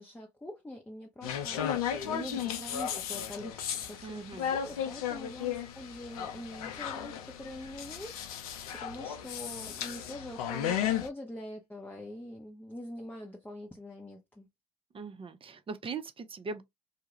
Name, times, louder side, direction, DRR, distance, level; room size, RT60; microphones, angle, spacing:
voice 1, 0.0-14.5, left 1 dB, 10° left, 0.7 m, -44 dB
sound 1, 1.2-11.1, left 9 dB, 90° left, 0.4 m, -35 dB
voice 2, 4.0-4.5 14.9-16.6, right 4 dB, 30° right, 0.5 m, -40 dB
2.3 x 2.0 x 2.8 m
hypercardioid pair, 55°, 18 cm